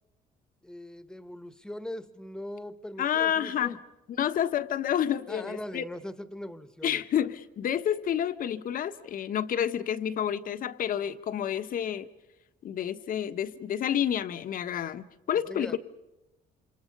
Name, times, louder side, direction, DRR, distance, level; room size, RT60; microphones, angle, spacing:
voice 1, 0.6-3.8 5.3-7.0 15.5-15.8, left 1 dB, 5° left, 12 dB, 1.5 m, -40 dB
voice 2, 3.0-3.8 4.1-5.8 6.8-12.1 12.6-15.8, left 9 dB, 55° left, 11 dB, 1.4 m, -29 dB
28.5 x 27.0 x 5.5 m, 0.98 s
cardioid pair, 110°, 17 cm